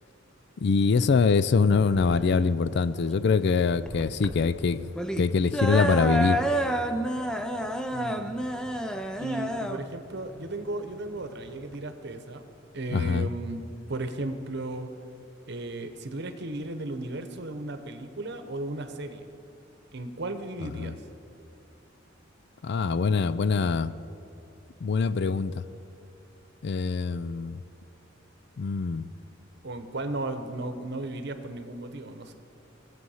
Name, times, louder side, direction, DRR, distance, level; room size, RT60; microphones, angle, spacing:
voice 1, 0.6-4.9 5.2-6.4 12.9-13.3 20.8-20.9 22.6-23.9 24.8-25.6 26.6-27.6 28.6-29.1, left 5 dB, 55° left, 16 dB, 0.4 m, -24 dB
sound 1, 1.7-11.7, right 1 dB, 5° left, 0.5 m, -30 dB
voice 2, 7.9-8.4 9.2-12.4 12.7-13.6 13.9-14.9 15.5-19.3 19.9-21.0 29.6-32.3, right 2 dB, 55° right, 8 dB, 0.9 m, -35 dB
19.0 x 7.7 x 5.6 m, 2.7 s
head